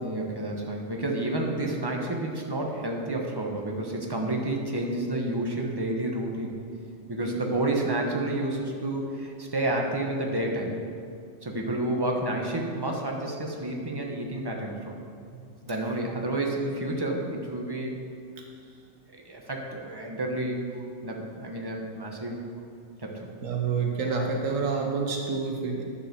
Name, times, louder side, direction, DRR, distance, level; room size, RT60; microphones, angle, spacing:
voice 1, 0.0-6.5 7.1-10.8 11.4-14.9 15.6-18.0 19.1-20.6 21.0-22.4 23.0-23.3, right 1 dB, 20° right, 0 dB, 1.0 m, -30 dB
voice 2, 23.4-25.8, right 5 dB, 75° right, 1 dB, 1.3 m, -28 dB
9.9 x 5.2 x 6.7 m, 2.3 s
omnidirectional pair, 1.4 m